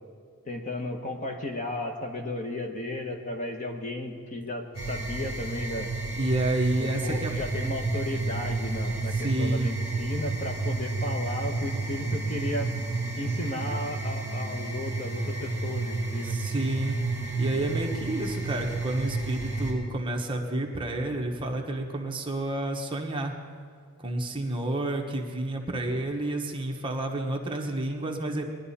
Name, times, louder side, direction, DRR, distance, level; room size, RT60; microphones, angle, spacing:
voice 1, 0.4-5.9 6.8-12.7 13.2-16.3, left 1 dB, 35° left, 3 dB, 1.1 m, -34 dB
sound 1, 4.7-19.7, right 3 dB, 85° left, 4.6 m, -31 dB
voice 2, 6.2-7.3 9.1-9.8 16.2-17.0 17.4-23.3 24.0-28.4, right 1 dB, 25° right, 1 dB, 1.1 m, -30 dB
20.5 x 11.0 x 4.2 m, 2.1 s
head